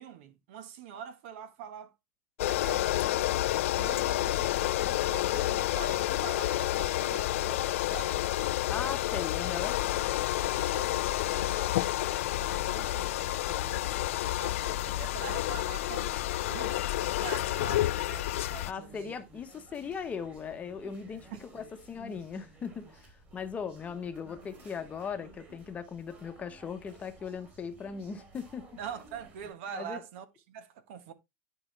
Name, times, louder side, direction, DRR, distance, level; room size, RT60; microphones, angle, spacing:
voice 1, 0.0-1.9 2.4-3.3 3.7-8.2 9.1-9.2 10.4-16.1 16.5-19.1 21.3-21.4 28.8-31.1, right 8 dB, 70° right, 1.3 m, -45 dB
sound 1, 2.4-18.7, left 15 dB, 90° left, 0.4 m, -29 dB
voice 2, 8.7-9.7 18.7-28.7 29.7-30.0, left 6 dB, 20° left, 1.0 m, -38 dB
sound 2, 16.9-29.5, right 2 dB, 25° right, 3.3 m, -55 dB
10.5 x 5.0 x 3.2 m
supercardioid pair, 145°, 7 cm